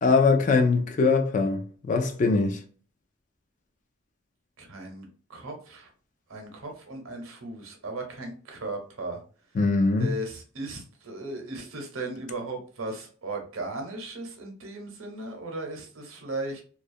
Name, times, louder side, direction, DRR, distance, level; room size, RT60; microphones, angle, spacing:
voice 1, 0.0-2.6 9.5-10.1, left 4 dB, 35° left, 0.3 m, -22 dB
voice 2, 4.6-5.9 6.3-9.2 10.0-16.6, right 2 dB, 75° right, 0.7 m, -36 dB
2.3 x 2.1 x 2.5 m
head